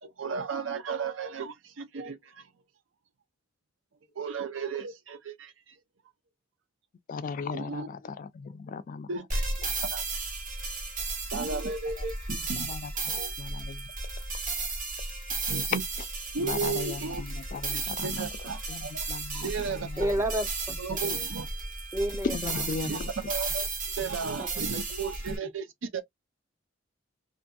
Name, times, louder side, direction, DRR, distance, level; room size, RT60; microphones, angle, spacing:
voice 1, 0.0-2.5 4.2-5.7 7.5-7.9 9.1-9.5 9.9-10.0 11.3-12.7 13.1-13.3 15.5-15.8 16.3-17.2 17.7-18.9 19.3-20.1 20.8-21.5 22.8-23.0 23.3-23.7 24.0-26.0, right 5 dB, 85° right, 0.6 m, -34 dB
voice 2, 7.1-9.1 12.0-12.1 12.3-13.9 16.4-20.1 22.2-23.1, left 4 dB, 45° left, 0.3 m, -37 dB
sound 1, 9.3-25.4, right 3 dB, 45° right, 1.0 m, -34 dB
voice 3, 20.0-21.0 21.9-22.4 24.4-24.5, right 1 dB, 15° right, 0.6 m, -30 dB
2.6 x 2.6 x 2.2 m
head